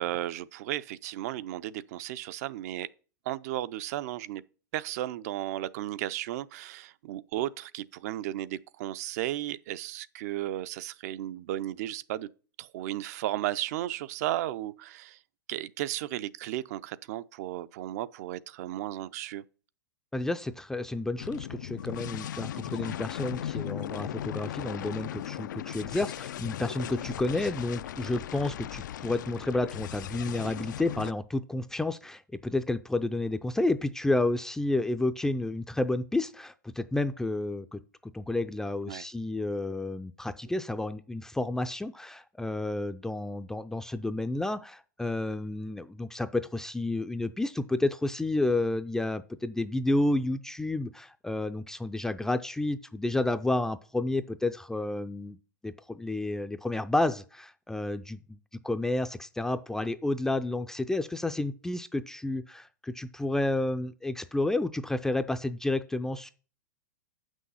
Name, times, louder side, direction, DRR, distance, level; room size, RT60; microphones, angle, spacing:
voice 1, 0.0-2.9 3.3-4.4 4.7-12.3 12.6-15.2 15.5-19.4 38.9-39.0, right 14 dB, 55° right, 0.5 m, -34 dB
voice 2, 20.1-37.8 38.1-55.4 55.6-58.4 58.6-66.3, left 2 dB, 5° left, 0.4 m, -30 dB
sound 1, 21.2-31.1, left 11 dB, 75° left, 0.4 m, -37 dB
7.6 x 6.3 x 5.5 m
hypercardioid pair, 135°, 10 cm